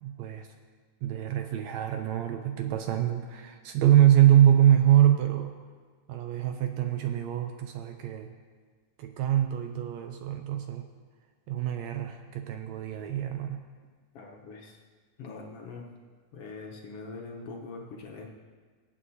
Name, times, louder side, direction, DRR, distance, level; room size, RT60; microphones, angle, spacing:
voice 1, 0.0-0.5 1.0-5.6 6.1-8.3 9.0-10.9 11.5-13.7, right 11 dB, 85° right, 6 dB, 1.6 m, -24 dB
voice 2, 14.1-14.8 15.2-15.9 16.3-18.3, left 3 dB, 65° left, 0 dB, 1.6 m, -42 dB
20.5 x 8.4 x 2.7 m, 1.5 s
omnidirectional pair, 3.6 m